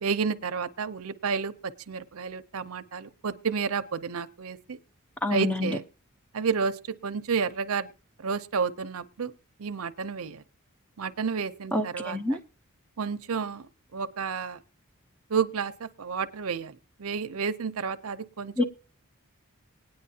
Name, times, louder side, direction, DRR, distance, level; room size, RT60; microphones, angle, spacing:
voice 1, 0.0-4.8 5.3-5.8 6.3-7.9 8.2-9.3 9.6-10.4 11.0-12.4 13.0-13.7 13.9-14.6 15.3-18.6, right 5 dB, 80° right, 0.6 m, -31 dB
voice 2, 5.2-5.8 11.7-12.4 18.6-18.7, left 2 dB, 5° left, 0.8 m, -27 dB
20.0 x 9.5 x 2.8 m
head